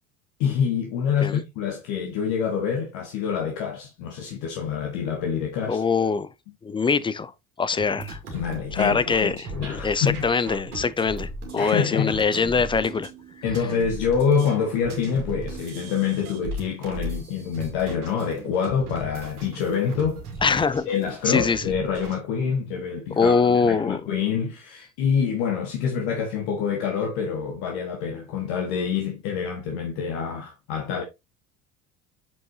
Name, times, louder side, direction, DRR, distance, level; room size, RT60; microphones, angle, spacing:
voice 1, 0.4-5.8 8.3-10.2 11.6-12.2 13.4-20.2 20.9-31.0, left 7 dB, 60° left, 1.6 m, -26 dB
voice 2, 5.7-6.3 6.6-7.3 7.6-8.2 8.7-9.4 9.7-13.1 20.4-20.9 21.3-21.6 23.2-24.0, left 5 dB, 10° left, 0.4 m, -23 dB
sound 1, 7.8-22.1, right 2 dB, 80° right, 2.2 m, -37 dB
7.3 x 5.3 x 2.7 m
hypercardioid pair, 70°, 44 cm